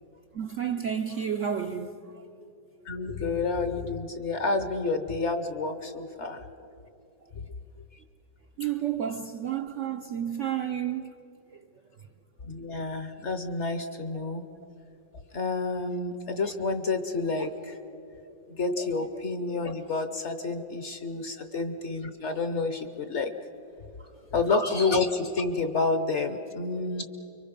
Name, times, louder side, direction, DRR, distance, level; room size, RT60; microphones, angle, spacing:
voice 1, 0.3-2.0 8.6-11.1 11.5-11.6, right 9 dB, 60° right, 0.8 m, -31 dB
voice 2, 2.9-6.4 12.5-14.4 15.3-17.7 18.6-23.3 24.3-27.0, left 3 dB, 45° left, 1.0 m, -29 dB
30.0 x 24.0 x 5.3 m
omnidirectional pair, 1.9 m